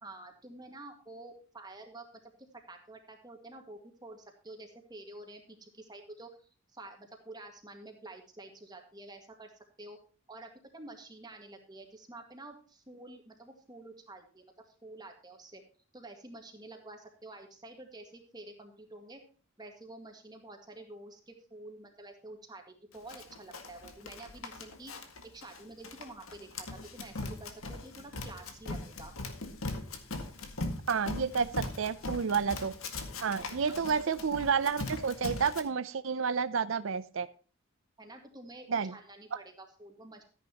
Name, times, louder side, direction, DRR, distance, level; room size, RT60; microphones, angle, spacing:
voice 1, 0.0-2.3 2.7-6.3 6.7-9.5 9.8-10.0 10.3-15.6 15.9-19.2 19.6-24.9 25.3-29.1 33.5-33.8 38.0-40.2, right 2 dB, 20° right, 3 dB, 1.8 m, -49 dB
Run, 23.1-35.6, left 2 dB, 80° left, 1.9 m, -40 dB
voice 2, 30.9-32.7 33.2-37.3 38.7-38.9, right 6 dB, 70° right, 14 dB, 0.5 m, -30 dB
14.0 x 10.0 x 2.9 m, 0.38 s
head